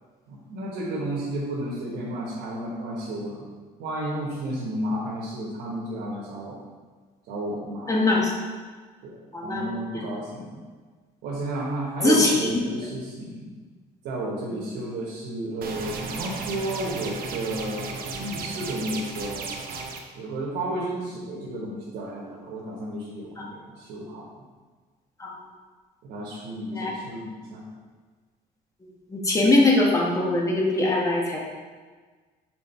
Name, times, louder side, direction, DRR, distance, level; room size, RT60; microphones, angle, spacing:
voice 1, 0.3-3.5 3.8-6.6 7.3-8.1 9.0-10.6 11.2-13.5 14.0-19.5 20.1-24.2 26.0-27.6, right 1 dB, 85° right, -7 dB, 1.4 m, -32 dB
voice 2, 7.9-8.3 9.3-9.6 9.9-10.0 12.0-12.6 14.5-14.6 23.4-23.5 25.2-25.3 26.7-26.9 29.1-31.4, left 2 dB, 20° left, -2 dB, 1.4 m, -22 dB
sound 1, 15.6-20.0, right 4 dB, 60° right, 0.9 m, -34 dB
6.2 x 4.5 x 4.4 m, 1.4 s
cardioid pair, 110°, 17 cm